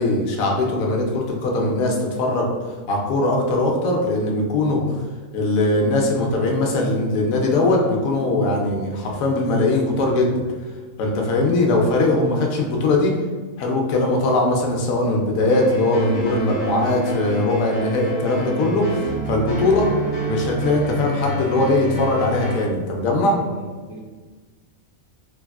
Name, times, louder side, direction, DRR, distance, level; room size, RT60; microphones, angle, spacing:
voice 1, 0.0-2.5 2.9-4.9 5.3-10.4 11.0-13.2 13.6-19.9 20.2-23.4, left 2 dB, 80° left, 0 dB, 1.0 m, -20 dB
sound 1, 15.5-22.6, right 2 dB, 40° left, 1.0 m, -28 dB
voice 2, 23.4-24.0, right 3 dB, 60° right, -1 dB, 0.8 m, -38 dB
3.3 x 2.3 x 2.2 m, 1.4 s
omnidirectional pair, 1.4 m